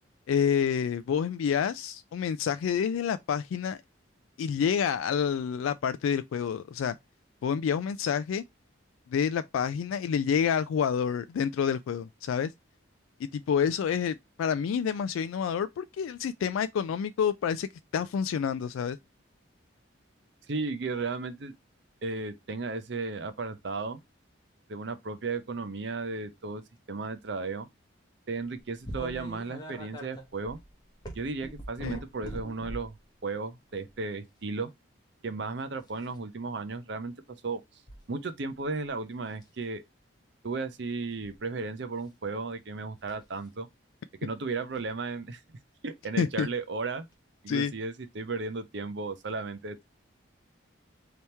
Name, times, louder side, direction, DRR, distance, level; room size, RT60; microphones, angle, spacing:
voice 1, 0.3-3.8 4.4-7.0 7.4-8.4 9.1-12.5 13.3-19.0 31.8-32.0 46.2-46.5 47.5-47.7, left 7 dB, 80° left, 0.3 m, -28 dB
voice 2, 20.5-21.5 22.0-24.0 24.7-26.6 26.9-27.7 28.3-30.6 31.1-33.0 33.2-34.7 35.2-37.1 37.4-37.6 38.1-39.8 40.4-43.7 44.2-45.6 45.8-47.1 47.4-49.8, right 3 dB, 55° right, 0.6 m, -34 dB
sound 1, 28.8-33.0 33.7-34.0 35.8-36.1 37.9-38.0 38.5-38.9 39.3-39.6 41.0-41.4 43.0-43.2 44.7-44.8 46.3-46.4 47.1-47.2, equal, 20° left, 0.9 m, -42 dB
3.5 x 2.9 x 4.2 m
head